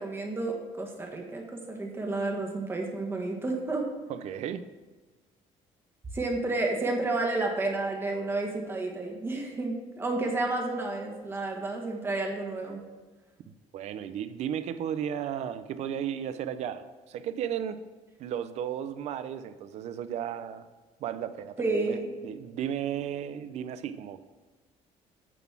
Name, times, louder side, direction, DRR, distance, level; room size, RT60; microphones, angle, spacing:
voice 1, 0.0-3.9 6.1-12.8 21.6-22.1, right 2 dB, 20° right, 1 dB, 1.3 m, -31 dB
voice 2, 4.1-4.7 13.7-17.8 18.2-20.7 21.0-22.0 22.2-24.2, right 9 dB, 60° right, 12 dB, 0.6 m, -34 dB
9.1 x 4.1 x 7.3 m, 1.3 s
cardioid pair, 160°, 13 cm